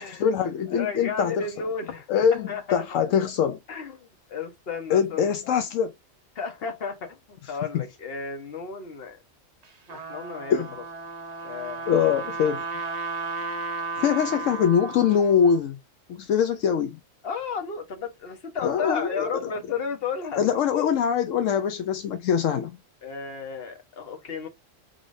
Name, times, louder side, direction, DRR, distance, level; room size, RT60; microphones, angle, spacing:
voice 1, 0.0-1.5 2.1-3.6 4.9-5.9 7.7-7.8 10.5-10.7 11.9-12.6 14.0-15.8 16.1-17.0 18.6-19.5 20.4-22.8, left 7 dB, 80° left, 1.0 m, -23 dB
voice 2, 0.7-2.8 3.7-5.3 6.3-9.2 9.9-10.6 11.4-11.9 17.2-20.9 23.0-24.5, left 5 dB, 50° left, 1.2 m, -33 dB
Trumpet, 9.6-15.6, right 4 dB, 35° right, 0.8 m, -34 dB
5.1 x 3.4 x 2.6 m
omnidirectional pair, 1.3 m